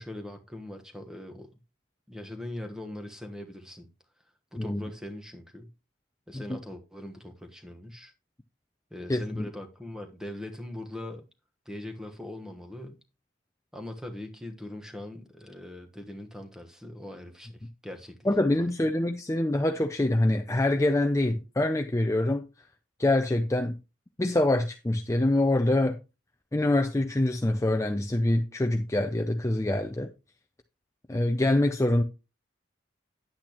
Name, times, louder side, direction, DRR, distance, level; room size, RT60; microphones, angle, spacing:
voice 1, 0.0-1.5 2.1-3.9 4.5-5.7 6.3-8.1 8.9-11.2 11.6-13.0 13.7-18.2 18.6-18.7, left 1 dB, 5° right, 1.2 m, -41 dB
voice 2, 9.1-9.5 18.2-22.5 23.0-23.8 24.2-26.0 26.5-30.1 31.1-32.0, left 1 dB, 15° left, 0.5 m, -25 dB
10.5 x 8.6 x 3.0 m
head